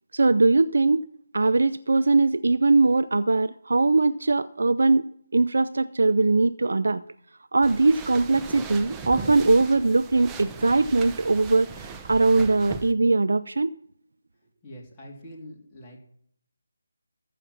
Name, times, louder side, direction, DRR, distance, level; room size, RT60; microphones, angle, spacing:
voice 1, 0.1-1.0 1.3-7.0 7.5-13.7, right 3 dB, 65° right, 14 dB, 0.5 m, -21 dB
sound 1, 7.6-12.9, right 5 dB, 10° right, 0.7 m, -39 dB
voice 2, 14.6-16.0, equal, 15° left, -5 dB, 2.9 m, -44 dB
14.0 x 5.8 x 7.1 m, 0.66 s
figure-of-eight pair, 155°, 0 cm